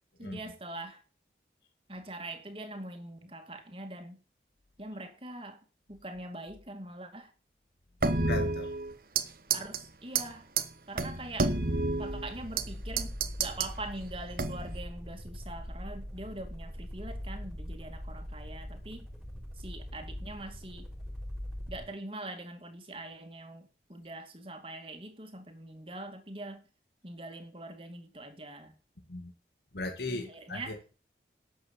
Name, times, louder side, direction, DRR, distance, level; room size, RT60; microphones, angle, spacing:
voice 1, 0.2-1.0 1.9-4.2 4.8-5.6 5.9-7.3 9.5-10.5 10.9-11.7 12.0-19.1 19.6-20.9 21.7-26.6 27.0-28.7 30.1-30.8, right 1 dB, 30° right, 2.5 m, -43 dB
sound 1, 8.0-9.3 9.5-9.8 10.2-10.3 10.6-10.7 11.0-12.7 13.0-13.7 14.4-14.8, right 3 dB, 55° right, 1.3 m, -29 dB
voice 2, 8.2-8.7 29.1-29.3 29.7-30.9, left 2 dB, 70° left, 2.1 m, -37 dB
sound 2, 11.3-21.9, equal, ahead, 4.0 m, -42 dB
11.0 x 8.0 x 7.2 m
head